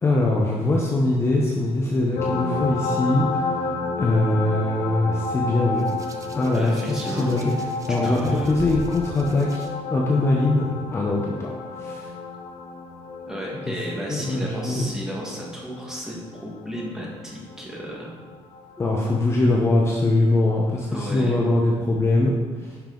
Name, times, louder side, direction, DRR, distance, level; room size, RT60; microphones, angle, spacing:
voice 1, 0.0-3.4 4.0-5.8 6.3-7.5 7.9-12.1 13.7-13.8 14.1-14.9 18.8-22.3 22.6-22.8, left 2 dB, 25° left, -2 dB, 0.8 m, -22 dB
sound 1, 2.1-19.4 20.9-21.0, left 3 dB, 90° left, 1.2 m, -32 dB
Hands, 5.8-9.7 10.7-11.0, right 3 dB, 30° right, 0.6 m, -41 dB
voice 2, 6.5-7.3 7.9-8.6 13.2-18.1 20.9-21.3, equal, 5° right, -4 dB, 1.6 m, -33 dB
10.5 x 5.4 x 3.8 m, 1.5 s
cardioid pair, 175°, 11 cm